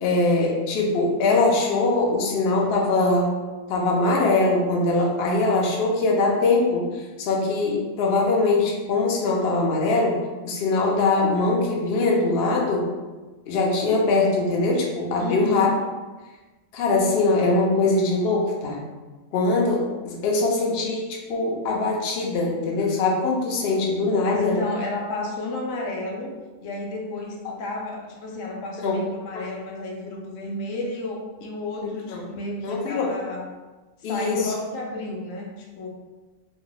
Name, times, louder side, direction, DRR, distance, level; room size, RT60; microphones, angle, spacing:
voice 1, 0.0-3.3 3.7-12.9 13.5-15.7 16.7-18.8 19.3-24.6 28.8-29.0 29.3-29.4 31.8-32.2 32.6-33.1 34.0-34.5, left 3 dB, 60° left, -1 dB, 0.7 m, -22 dB
voice 2, 15.2-15.8 24.2-26.3 26.6-33.5 34.0-35.9, left 2 dB, 85° left, 0 dB, 1.0 m, -31 dB
2.7 x 2.2 x 3.8 m, 1.2 s
omnidirectional pair, 1.3 m